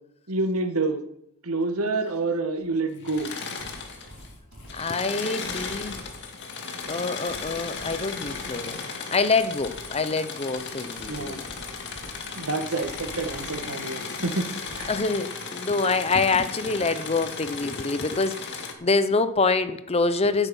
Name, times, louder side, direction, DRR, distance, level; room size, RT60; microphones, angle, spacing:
voice 1, 0.3-1.0 1.4-3.3 11.1-11.4 12.3-14.5 14.8-14.9, right 3 dB, 80° right, 1.7 m, -28 dB
sound 1, 2.6-2.7 3.1-6.4 6.8-10.1 10.5-13.8 14.2-15.1, equal, 65° right, 4.0 m, -48 dB
Engine / Mechanisms, 3.0-4.3 4.6-18.7, left 4 dB, 55° left, 2.0 m, -36 dB
voice 2, 4.7-6.0 6.9-11.4 14.9-20.5, left 3 dB, 30° left, 0.6 m, -26 dB
16.5 x 8.3 x 5.5 m
head